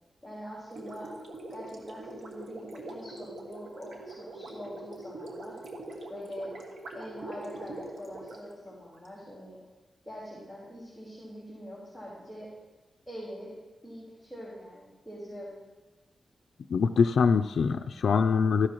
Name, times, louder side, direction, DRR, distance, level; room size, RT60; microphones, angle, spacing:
voice 1, 0.2-1.1 1.5-5.5 6.1-6.5 6.9-9.6 10.1-12.5 13.1-13.5 13.8-15.6, equal, 10° right, -7 dB, 3.9 m, -43 dB
Gurgling, 0.7-9.1, right 2 dB, 85° right, 1.6 m, -43 dB
voice 2, 16.7-18.7, left 5 dB, 85° left, 6 dB, 0.4 m, -24 dB
14.0 x 11.0 x 3.0 m, 1.2 s
wide cardioid pair, 100°, 0 cm